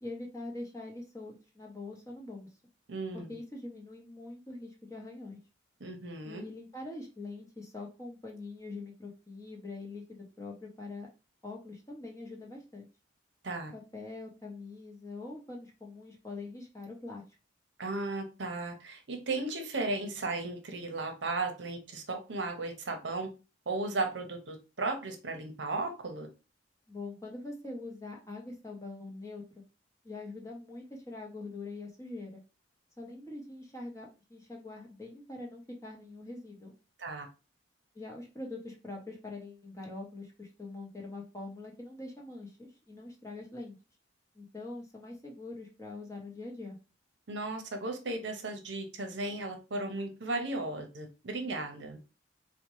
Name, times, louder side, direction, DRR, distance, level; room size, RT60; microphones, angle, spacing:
voice 1, 0.0-2.5 3.1-5.4 6.2-11.1 11.4-12.9 13.7-17.2 26.9-29.4 30.0-32.4 33.0-36.7 37.9-43.8 44.3-46.8, left 2 dB, 15° left, 0.7 m, -43 dB
voice 2, 2.9-3.3 5.8-6.4 13.4-13.7 17.8-23.3 23.7-26.3 37.0-37.3 47.3-52.0, right 2 dB, 65° right, 0.7 m, -35 dB
4.1 x 2.1 x 3.0 m
head